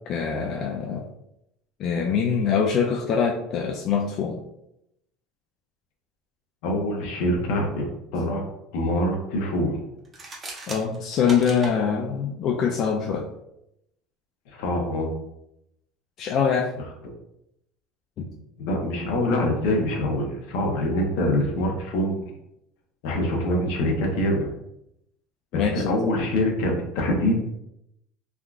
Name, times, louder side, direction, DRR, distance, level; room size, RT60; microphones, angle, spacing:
voice 1, 0.1-1.0 1.8-4.4 10.7-13.3 16.2-16.7 25.5-26.0, left 6 dB, 50° left, 0 dB, 0.3 m, -24 dB
voice 2, 6.6-7.8 8.1-8.4 8.7-9.8 14.5-15.1 18.6-22.3 23.0-24.5 25.5-27.4, left 1 dB, 75° left, 1 dB, 0.8 m, -24 dB
sound 1, 10.0-11.8, right 2 dB, 25° right, 0.6 m, -37 dB
3.5 x 2.3 x 2.4 m, 0.82 s
supercardioid pair, 125°, 0 cm